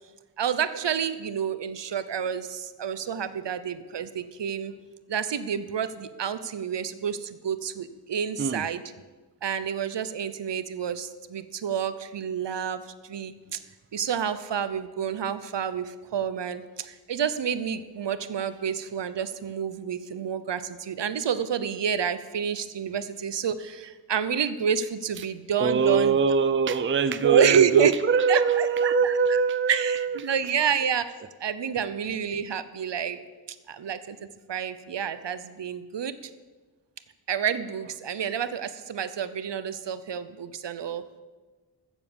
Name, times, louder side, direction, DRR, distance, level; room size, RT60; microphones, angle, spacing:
voice 1, 0.4-4.7 5.1-8.8 9.4-13.6 13.9-26.2 27.2-27.9 28.3-29.4 29.7-31.1 31.4-33.2 33.7-34.2 34.5-36.1 37.3-41.0, right 8 dB, 70° right, 13 dB, 0.8 m, -28 dB
voice 2, 25.6-30.2, right 5 dB, 30° right, 12 dB, 0.5 m, -23 dB
15.0 x 7.3 x 7.0 m, 1.3 s
wide cardioid pair, 115°, 44 cm